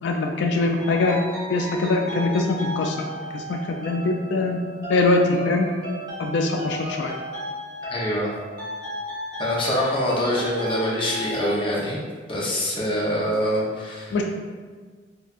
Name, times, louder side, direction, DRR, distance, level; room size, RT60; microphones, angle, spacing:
voice 1, 0.0-1.2 1.5-4.6 4.9-5.7 6.2-7.1 14.1-14.2, left 3 dB, 90° left, 2 dB, 0.3 m, -23 dB
sound 1, 0.8-11.7, equal, 25° right, 1.2 m, -35 dB
voice 2, 7.9-8.4 9.4-12.0 12.3-14.2, equal, 30° left, -5 dB, 0.8 m, -24 dB
4.4 x 2.4 x 2.4 m, 1.5 s
head